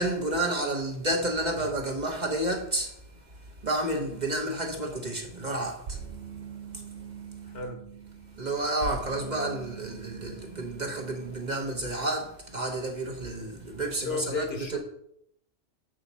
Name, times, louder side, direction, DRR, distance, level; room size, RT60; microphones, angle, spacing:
voice 1, 0.0-3.0 3.6-6.0 8.4-14.8, right 1 dB, 40° right, 1.1 m, -30 dB
sound 1, 5.9-11.5, right 6 dB, 60° right, 0.8 m, -42 dB
voice 2, 7.4-7.8 14.0-14.8, left 4 dB, 60° left, 1.4 m, -34 dB
7.2 x 6.2 x 4.1 m
omnidirectional pair, 1.2 m